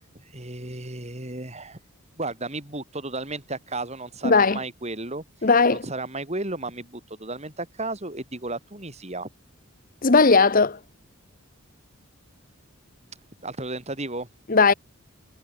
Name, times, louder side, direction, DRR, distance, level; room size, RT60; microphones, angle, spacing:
voice 1, 0.3-1.8 2.2-9.3 13.4-14.3, right 2 dB, 30° right, 5.2 m, -34 dB
voice 2, 4.2-4.6 5.4-5.8 10.0-10.8 14.5-14.7, left 4 dB, 40° left, 1.0 m, -17 dB
head